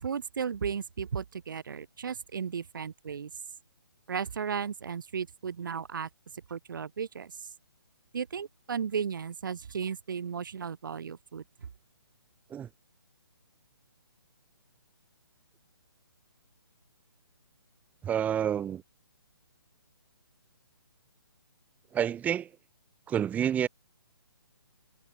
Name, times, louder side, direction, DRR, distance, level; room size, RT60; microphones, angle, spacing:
voice 1, 0.0-3.3 4.1-6.1 6.5-7.5 8.1-11.4, right 7 dB, 55° right, 3.4 m, -35 dB
voice 2, 18.0-18.8 21.9-22.5 23.1-23.7, right 9 dB, 10° right, 6.0 m, -28 dB
figure-of-eight pair, 140°, 13 cm